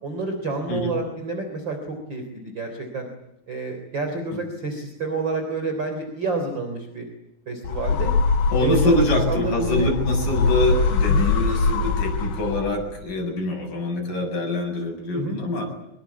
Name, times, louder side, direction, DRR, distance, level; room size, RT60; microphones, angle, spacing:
voice 1, 0.0-3.1 3.5-7.1 7.5-8.1 8.6-9.0 9.3-9.9 11.1-11.3 15.2-15.4, right 3 dB, 30° right, 5 dB, 4.0 m, -29 dB
sound 1, 7.6-13.0, left 4 dB, 90° left, 4.6 m, -22 dB
voice 2, 8.5-15.7, left 1 dB, 65° left, 2 dB, 8.6 m, -24 dB
25.0 x 23.0 x 8.4 m, 0.85 s
omnidirectional pair, 4.0 m